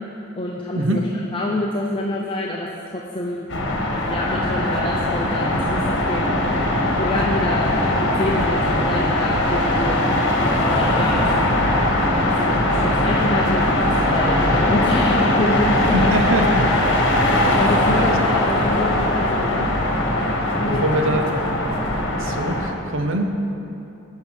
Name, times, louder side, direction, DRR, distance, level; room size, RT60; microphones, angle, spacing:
voice 1, 0.3-1.0 1.3-2.7 2.9-3.5 4.1-6.2 6.9-7.7 8.0-10.0 10.6-11.6 12.2-12.5 12.8-16.1 16.6-16.7 17.6-19.7 20.6-21.1, left 1 dB, 25° left, -3 dB, 0.7 m, -26 dB
sound 1, 3.5-22.7, left 1 dB, 60° left, 1.3 m, -20 dB
voice 2, 15.9-16.7 17.9-18.2 20.6-21.5 21.8-23.3, right 1 dB, 70° right, 4 dB, 0.7 m, -23 dB
10.0 x 5.6 x 6.1 m, 2.8 s
head